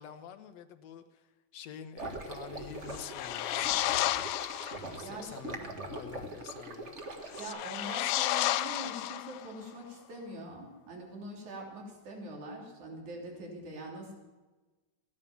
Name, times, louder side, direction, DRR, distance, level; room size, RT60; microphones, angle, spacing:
voice 1, 0.0-3.7 5.0-6.9, left 9 dB, 70° left, 9 dB, 2.1 m, -48 dB
sound 1, 2.0-7.5, right 2 dB, 35° right, 1.3 m, -42 dB
sound 2, 2.9-4.9 7.3-9.6, left 14 dB, 85° left, 2.0 m, -32 dB
voice 2, 5.0-5.4 7.4-14.1, right 1 dB, 80° right, 0 dB, 4.7 m, -43 dB
16.0 x 11.0 x 7.2 m, 1.2 s
omnidirectional pair, 3.3 m